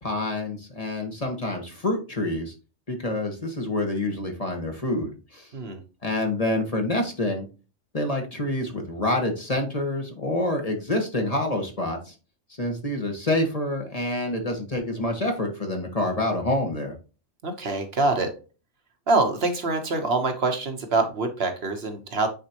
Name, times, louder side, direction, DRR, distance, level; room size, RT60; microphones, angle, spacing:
voice 1, 0.0-2.5 2.9-5.5 6.0-7.5 7.9-12.1 12.6-17.0, left 1 dB, 30° left, 3 dB, 1.5 m, -27 dB
voice 2, 17.4-18.4 19.1-22.3, right 3 dB, 60° right, 6 dB, 1.2 m, -25 dB
9.2 x 4.2 x 2.9 m, 0.33 s
omnidirectional pair, 1.2 m